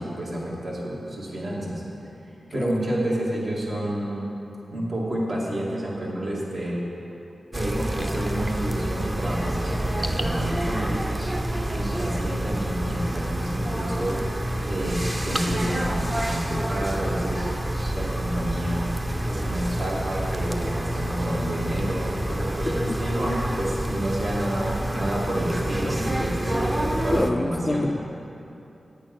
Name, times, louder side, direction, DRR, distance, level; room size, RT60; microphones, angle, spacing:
voice 1, 0.0-1.8 2.5-4.3 4.7-6.8 7.5-11.3 11.7-14.2 14.7-27.9, right 1 dB, 65° right, -6 dB, 2.8 m, -29 dB
sound 1, 7.5-27.3, right 1 dB, 20° right, 0.8 m, -28 dB
voice 2, 27.1-28.0, left 2 dB, 30° left, 10 dB, 0.3 m, -26 dB
8.8 x 8.7 x 6.3 m, 2.8 s
cardioid pair, 60°, 0 cm